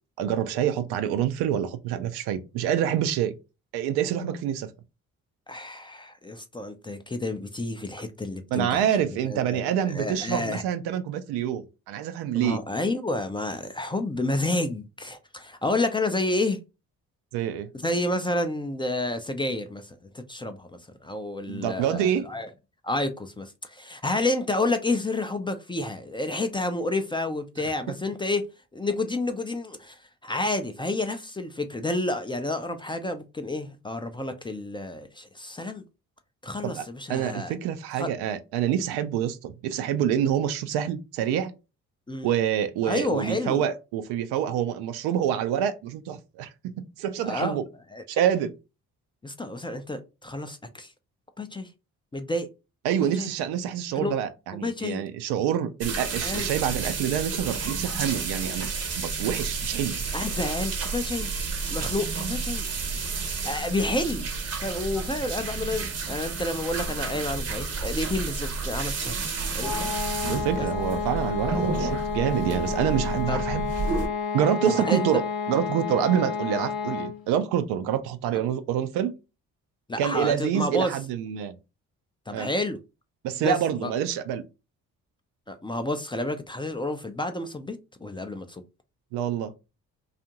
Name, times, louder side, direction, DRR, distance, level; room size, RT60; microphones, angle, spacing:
voice 1, 0.2-3.4 3.7-4.7 8.5-12.6 17.3-17.7 21.5-22.2 36.6-41.5 42.2-47.6 48.1-48.5 52.8-58.7 59.0-60.0 70.3-73.7 74.3-75.2 75.5-79.2 80.0-81.5 82.3-82.5 83.2-84.4 89.1-89.5, right 9 dB, 70° right, 0.5 m, -27 dB
voice 2, 5.5-10.6 12.3-16.6 17.7-22.5 22.8-28.4 28.7-35.8 36.4-37.5 37.9-38.1 42.1-42.3 42.8-43.6 47.2-47.6 47.9-48.0 49.2-50.9 51.4-51.7 52.1-52.5 53.0-53.3 53.9-54.2 54.5-55.1 56.2-56.5 60.1-61.3 61.7-62.7 63.1-64.3 64.6-69.2 69.5-69.9 70.6-70.7 73.3-73.4 74.7-75.1 79.9-81.0 82.3-82.8 83.4-83.9 85.5-88.6, left 2 dB, 15° left, 0.4 m, -30 dB
sound 1, 55.8-74.1, right 4 dB, 40° right, 0.8 m, -31 dB
sound 2, 69.6-77.3, left 6 dB, 65° left, 0.8 m, -30 dB
2.5 x 2.4 x 2.8 m
hypercardioid pair, 45°, 40 cm